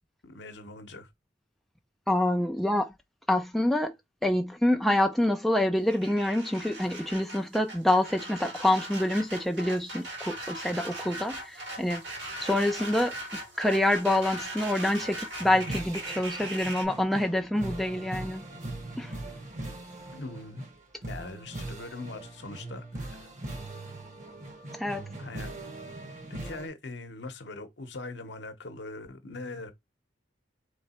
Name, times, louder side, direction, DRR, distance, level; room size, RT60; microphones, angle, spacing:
voice 1, 0.2-1.1 20.1-20.6 21.1-23.3 25.2-25.5 26.3-29.7, left 2 dB, 65° left, 0.8 m, -41 dB
voice 2, 2.1-2.9 3.3-4.0 4.2-12.0 12.4-13.1 13.6-18.4 19.0-19.1 24.7-25.1, left 1 dB, ahead, 0.3 m, -26 dB
sound 1, 5.8-16.8, right 1 dB, 70° right, 1.7 m, -39 dB
sound 2, 15.4-26.7, right 2 dB, 40° right, 1.0 m, -40 dB
3.8 x 3.2 x 4.2 m
head